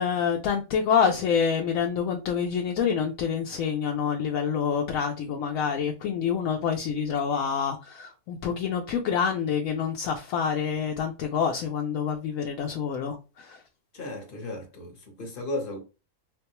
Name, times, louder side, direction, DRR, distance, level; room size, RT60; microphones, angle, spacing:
voice 1, 0.0-13.6, left 7 dB, 75° left, 1.0 m, -27 dB
voice 2, 13.9-15.8, left 2 dB, 45° left, 1.0 m, -35 dB
3.8 x 2.2 x 2.9 m
omnidirectional pair, 1.5 m